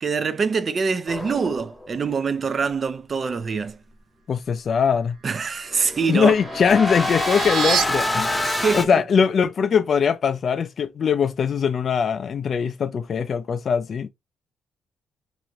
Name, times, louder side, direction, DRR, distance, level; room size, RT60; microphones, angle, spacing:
voice 1, 0.0-3.8 5.2-6.4 8.4-8.9, right 5 dB, 40° right, 0.4 m, -24 dB
sound 1, 1.1-2.0 5.7-8.9, left 2 dB, 10° left, 0.7 m, -26 dB
voice 2, 4.3-5.2 6.1-8.5 8.7-14.1, left 6 dB, 50° left, 0.3 m, -21 dB
sound 2, 5.6-7.8, right 7 dB, 90° right, 0.7 m, -29 dB
2.9 x 2.6 x 2.9 m
cardioid pair, 90°, 0 cm